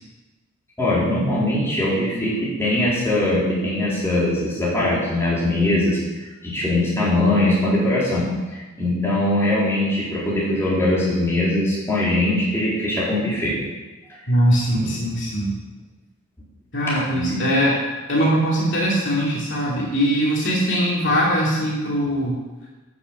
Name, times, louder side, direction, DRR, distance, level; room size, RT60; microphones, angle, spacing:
voice 1, 0.8-6.0 6.4-8.3 8.5-13.5 14.8-14.9 17.1-17.4, left 1 dB, 10° left, -8 dB, 4.0 m, -21 dB
voice 2, 14.3-15.5 16.7-17.8 18.1-22.4, equal, 55° left, -4 dB, 2.8 m, -21 dB
11.0 x 7.1 x 7.9 m, 1.2 s
head